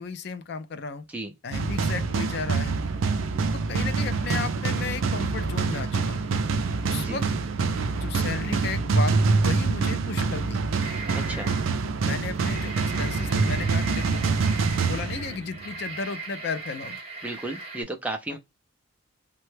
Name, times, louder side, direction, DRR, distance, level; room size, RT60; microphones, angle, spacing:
voice 1, 0.0-1.0 1.4-2.8 3.5-6.3 6.8-7.2 8.0-10.6 12.0-14.2 14.8-17.0 18.3-18.4, left 5 dB, 55° left, 0.4 m, -34 dB
sound 1, 1.5-15.7, right 4 dB, 80° right, 0.4 m, -25 dB
sound 2, 10.8-11.8 12.2-17.8, right 3 dB, 30° right, 1.0 m, -39 dB
voice 2, 11.1-11.5 17.2-18.4, right 1 dB, 5° right, 0.4 m, -33 dB
3.2 x 2.2 x 3.1 m
head